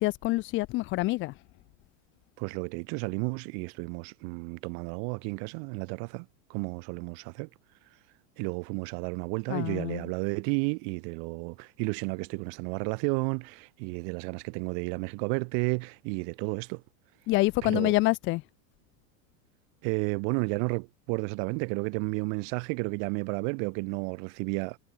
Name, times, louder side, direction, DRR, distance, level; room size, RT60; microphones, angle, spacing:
voice 1, 0.0-1.3 9.5-10.1 17.3-18.4, left 20 dB, 30° left, 0.4 m, -26 dB
voice 2, 2.4-7.5 8.4-16.8 17.6-17.9 19.8-24.8, right 40 dB or more, 50° right, 0.8 m, -32 dB
supercardioid pair, 135°, 46 cm